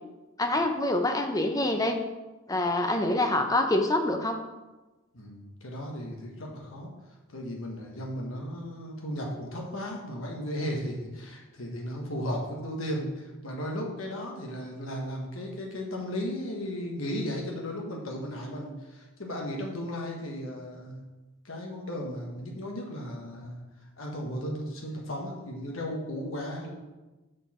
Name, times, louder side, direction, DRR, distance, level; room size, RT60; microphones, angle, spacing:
voice 1, 0.4-2.0 2.5-4.4, left 1 dB, 15° left, 5 dB, 0.5 m, -26 dB
voice 2, 5.1-6.9 7.3-21.0 21.4-23.6 24.0-26.7, equal, 75° left, 0 dB, 1.4 m, -35 dB
6.3 x 5.2 x 4.3 m, 1.1 s
head